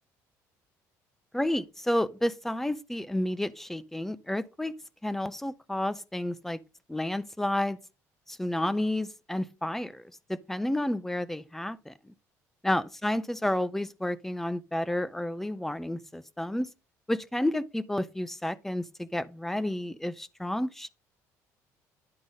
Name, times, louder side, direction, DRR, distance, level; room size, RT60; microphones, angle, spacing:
voice 1, 1.3-4.7 5.0-6.6 6.9-7.8 8.3-10.0 10.3-12.1 12.6-16.7 17.1-20.9, left 1 dB, 5° left, 0.5 m, -31 dB
10.5 x 3.9 x 5.1 m
cardioid pair, 130°, 6 cm